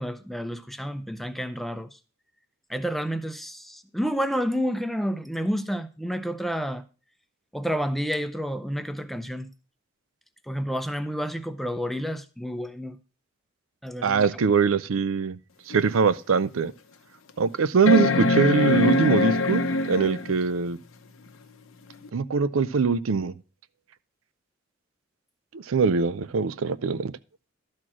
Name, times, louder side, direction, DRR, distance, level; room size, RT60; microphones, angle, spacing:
voice 1, 0.0-2.0 2.7-6.8 7.5-9.5 10.5-13.0 13.8-14.3, equal, ahead, 0.5 m, -30 dB
voice 2, 14.0-15.4 15.7-16.7 17.4-19.6 19.9-20.8 22.1-23.3 25.5-27.1, right 5 dB, 85° right, 0.5 m, -22 dB
Mac Start Up, 15.7-15.8 16.4-16.5 17.9-20.3 22.0-22.1, left 2 dB, 85° left, 0.9 m, -23 dB
12.0 x 4.4 x 6.0 m
head